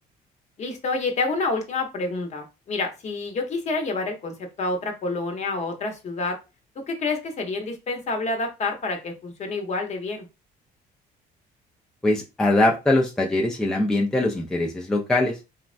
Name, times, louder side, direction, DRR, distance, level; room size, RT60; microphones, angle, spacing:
voice 1, 0.6-6.4 6.9-10.3, left 3 dB, 45° left, 3 dB, 0.8 m, -28 dB
voice 2, 12.0-15.4, left 2 dB, 5° left, -2 dB, 0.4 m, -22 dB
3.3 x 2.1 x 2.4 m, 0.27 s
cardioid pair, 110°, 17 cm